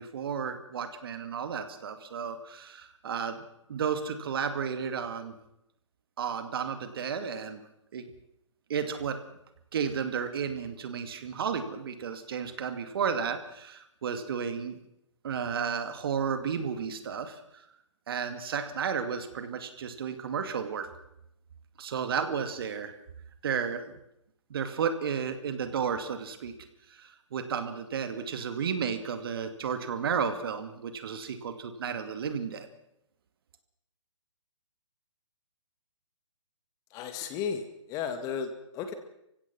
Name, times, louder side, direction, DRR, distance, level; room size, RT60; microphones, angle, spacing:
voice 1, 0.0-3.4 3.7-5.3 6.2-7.6 7.9-8.1 8.7-9.2 9.7-14.8 15.2-17.4 18.1-20.9 21.8-22.9 23.4-23.9 24.5-26.5 26.9-32.7, right 6 dB, 50° right, 9 dB, 2.3 m, -33 dB
voice 2, 36.9-38.9, left 7 dB, 20° left, 8 dB, 2.0 m, -34 dB
28.0 x 16.0 x 6.1 m, 0.81 s
figure-of-eight pair, 135°, 16 cm